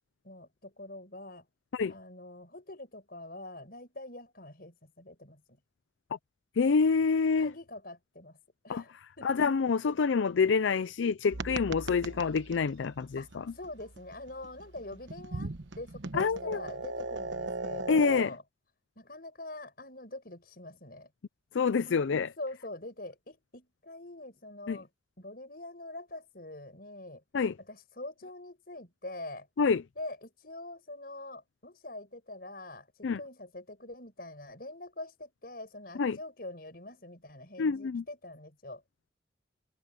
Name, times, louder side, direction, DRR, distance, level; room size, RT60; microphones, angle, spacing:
voice 1, 0.2-1.5 1.9-5.6 7.4-8.4 8.6-9.3 13.2-18.4 19.0-21.1 21.9-24.9 25.2-27.2 27.6-29.5 30.0-38.8, left 2 dB, 50° left, 7.1 m, -44 dB
voice 2, 6.6-7.5 8.7-8.8 9.2-13.4 16.1-16.6 17.9-18.3 21.5-22.3 24.7-24.8 27.3-27.5 29.6-29.8 33.0-33.2 36.0-36.2 37.6-38.0, left 5 dB, 85° left, 0.5 m, -27 dB
sound 1, 11.3-18.2, right 3 dB, 80° right, 1.1 m, -39 dB
head